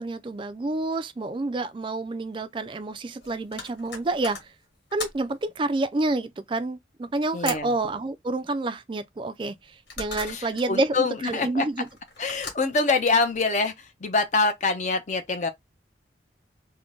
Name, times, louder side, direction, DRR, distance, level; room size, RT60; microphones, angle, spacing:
voice 1, 0.0-4.5 4.9-11.9, right 2 dB, 25° right, 0.3 m, -28 dB
sound 1, 1.3-1.4 2.6-5.4 7.4-7.9 9.4-10.7 11.7-13.4, left 3 dB, 70° left, 1.6 m, -39 dB
voice 2, 7.3-7.7 10.3-11.6 12.2-13.7 14.0-15.5, left 3 dB, 40° left, 0.6 m, -25 dB
3.7 x 2.1 x 3.6 m
head